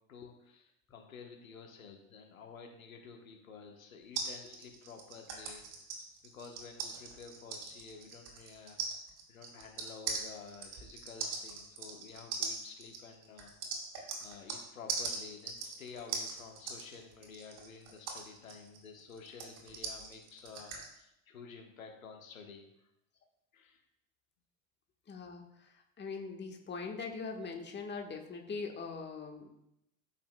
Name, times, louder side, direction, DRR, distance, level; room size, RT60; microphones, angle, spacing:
voice 1, 0.1-0.6 0.9-5.6 6.3-8.8 9.3-13.5 14.2-22.6 23.5-23.8, left 5 dB, 85° left, 3 dB, 1.2 m, -51 dB
sound 1, 4.1-14.6 14.9-20.9, right 5 dB, 50° right, 2.6 m, -40 dB
voice 2, 25.1-29.6, left 4 dB, 25° left, 3 dB, 1.4 m, -42 dB
13.0 x 5.7 x 2.2 m, 0.83 s
hypercardioid pair, 70°, 40 cm